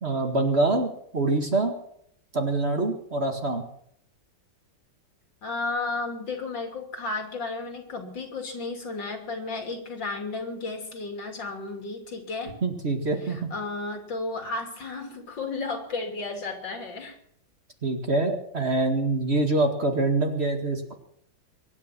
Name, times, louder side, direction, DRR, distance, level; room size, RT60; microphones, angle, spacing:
voice 1, 0.0-1.7 2.3-3.6 12.6-13.5 17.8-20.9, right 2 dB, 35° right, 4 dB, 2.1 m, -25 dB
voice 2, 5.4-12.5 13.2-17.2, left 3 dB, 80° left, 4 dB, 3.6 m, -33 dB
24.0 x 9.9 x 6.0 m, 0.69 s
omnidirectional pair, 2.0 m